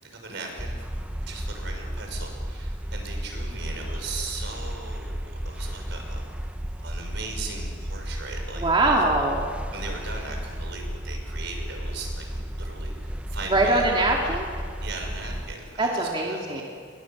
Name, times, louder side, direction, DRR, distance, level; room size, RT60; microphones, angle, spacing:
voice 1, 0.0-0.8 1.3-6.2 6.8-8.6 9.7-13.9 14.8-16.6, right 3 dB, 65° right, 3 dB, 6.0 m, -38 dB
sound 1, 0.6-15.5, equal, 5° right, 0.9 m, -33 dB
voice 2, 8.6-9.5 13.5-14.5 15.8-16.6, right 2 dB, 25° right, -2 dB, 2.6 m, -22 dB
29.0 x 23.0 x 7.3 m, 2.1 s
head